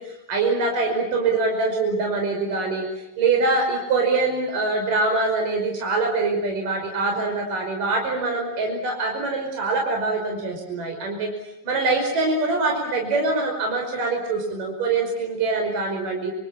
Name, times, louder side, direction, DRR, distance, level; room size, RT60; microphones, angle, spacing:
voice 1, 0.3-2.9 3.2-11.3 11.6-16.3, right 3 dB, 60° right, 2 dB, 7.2 m, -24 dB
29.5 x 27.5 x 7.3 m, 0.86 s
omnidirectional pair, 4.4 m